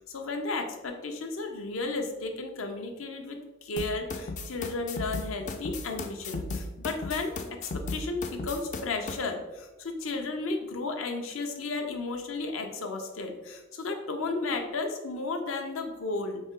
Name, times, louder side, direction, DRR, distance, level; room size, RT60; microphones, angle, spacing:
voice 1, 0.0-7.3 7.6-16.5, left 3 dB, 75° left, 4 dB, 0.6 m, -33 dB
sound 1, 3.8-9.2, left 3 dB, 35° left, 0.4 m, -36 dB
4.2 x 3.3 x 3.6 m, 1.1 s
head